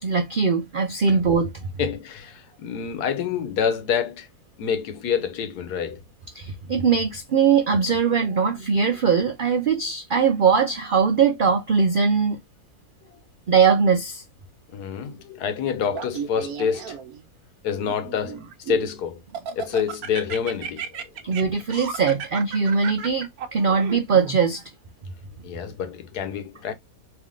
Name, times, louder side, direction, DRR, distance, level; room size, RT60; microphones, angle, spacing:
voice 1, 0.0-1.7 6.3-12.4 13.5-14.2 21.2-24.6, right 6 dB, 90° right, 0.4 m, -21 dB
voice 2, 1.8-4.3 4.6-6.0 13.1-13.2 14.7-16.9 17.6-19.2 19.5-21.3 25.4-26.7, left 7 dB, 80° left, 1.3 m, -27 dB
Laughter, 15.9-17.2 17.8-18.9 19.3-24.4, right 7 dB, 75° right, 1.2 m, -34 dB
3.4 x 2.9 x 3.6 m
omnidirectional pair, 1.6 m